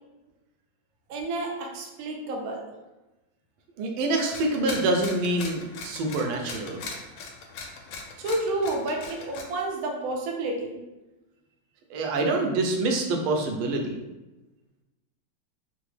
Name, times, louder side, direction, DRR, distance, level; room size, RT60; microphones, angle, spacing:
voice 1, 1.1-2.7 8.2-10.8, right 2 dB, 70° right, 0 dB, 0.8 m, -30 dB
voice 2, 3.8-6.8 11.9-14.0, right 2 dB, 90° right, 2 dB, 1.4 m, -26 dB
sound 1, 4.3-9.4, left 4 dB, 80° left, 1.3 m, -40 dB
3.9 x 2.1 x 3.1 m, 1.0 s
omnidirectional pair, 2.2 m